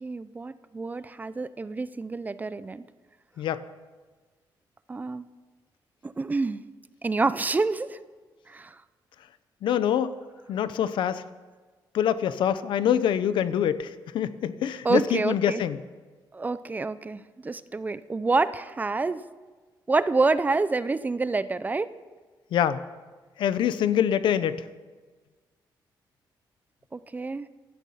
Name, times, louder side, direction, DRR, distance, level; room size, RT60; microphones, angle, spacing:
voice 1, 0.0-2.8 4.9-5.3 6.0-6.6 7.0-8.0 8.5-8.8 14.8-15.6 16.3-19.2 19.9-21.9 26.9-27.5, right 3 dB, 20° right, 15 dB, 0.5 m, -27 dB
voice 2, 9.6-10.1 10.5-11.2 11.9-15.8 22.5-22.8 23.4-24.6, left 9 dB, 85° left, 14 dB, 0.8 m, -25 dB
16.0 x 13.0 x 5.6 m, 1.4 s
cardioid pair, 135°, 8 cm